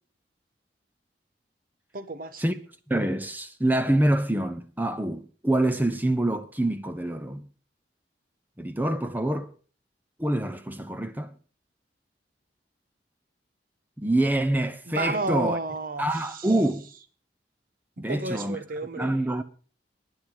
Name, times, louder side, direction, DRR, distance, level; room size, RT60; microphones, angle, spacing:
voice 1, 1.9-2.4 14.9-16.5 18.0-19.3, right 2 dB, 50° right, 1.3 m, -32 dB
voice 2, 2.9-7.4 8.6-9.5 10.2-11.3 14.0-15.6 16.0-16.9 18.0-18.6 19.0-19.4, right 1 dB, 10° right, 0.8 m, -26 dB
12.0 x 10.0 x 6.4 m
head